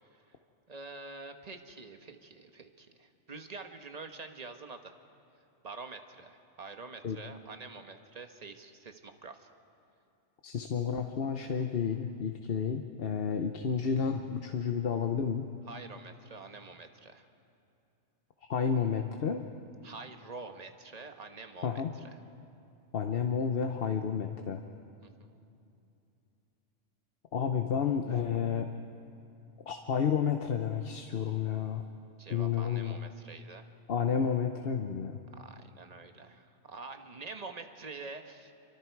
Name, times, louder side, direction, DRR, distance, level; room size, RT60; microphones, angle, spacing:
voice 1, 0.7-4.9 5.6-9.5 15.7-17.3 19.8-22.2 25.0-25.4 32.2-33.7 35.3-38.5, right 3 dB, 35° right, 6 dB, 1.3 m, -46 dB
voice 2, 10.4-15.5 18.5-19.4 21.6-21.9 22.9-24.6 27.3-28.7 29.7-31.8 32.3-33.0 33.9-35.2, left 7 dB, 55° left, 5 dB, 1.0 m, -31 dB
28.0 x 24.0 x 4.7 m, 2.7 s
omnidirectional pair, 1.2 m